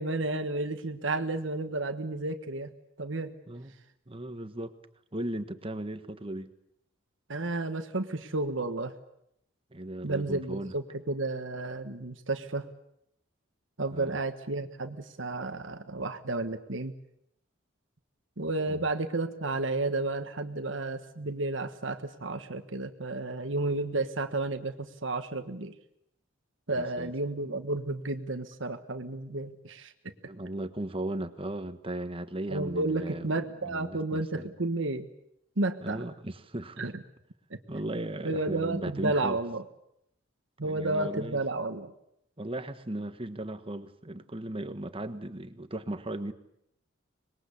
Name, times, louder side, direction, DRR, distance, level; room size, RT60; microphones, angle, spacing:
voice 1, 0.0-2.7 3.0-3.3 7.3-8.9 10.0-12.7 13.8-16.9 18.4-25.7 26.7-29.9 32.5-35.1 35.6-36.0 36.8-36.9 37.5-37.6 38.2-39.6 40.6-41.9, right 2 dB, 65° right, 1.4 m, -32 dB
voice 2, 4.1-4.7 5.1-6.5 9.7-10.8 13.9-14.2 18.7-18.9 26.7-27.1 30.2-33.3 33.6-34.5 35.8-36.9 37.7-39.4 40.6-41.4 42.4-46.3, right 1 dB, 30° right, 1.4 m, -36 dB
25.5 x 21.0 x 8.4 m
head